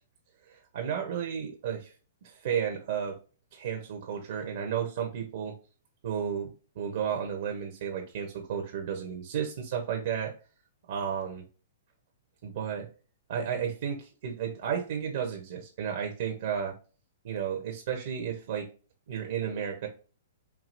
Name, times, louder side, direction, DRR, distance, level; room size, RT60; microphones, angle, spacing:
voice 1, 0.5-1.9 2.2-3.2 3.5-5.6 6.0-10.3 10.9-11.4 12.4-12.9 13.3-16.7 17.2-18.7 19.1-19.9, right 8 dB, 60° right, 3 dB, 1.0 m, -33 dB
4.7 x 2.8 x 2.6 m, 0.36 s
hypercardioid pair, 125°, 0 cm